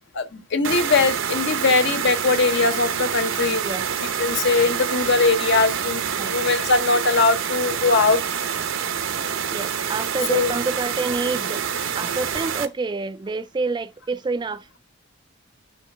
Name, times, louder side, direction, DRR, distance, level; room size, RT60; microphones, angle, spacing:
voice 1, 0.1-3.6 4.0-8.2 10.3-10.5, left 3 dB, 60° left, 1.0 m, -21 dB
sound 1, 0.6-12.7, right 7 dB, 80° right, 0.8 m, -27 dB
voice 2, 9.5-11.6 11.9-14.7, right 3 dB, 25° right, 0.3 m, -27 dB
6.5 x 3.1 x 5.4 m
head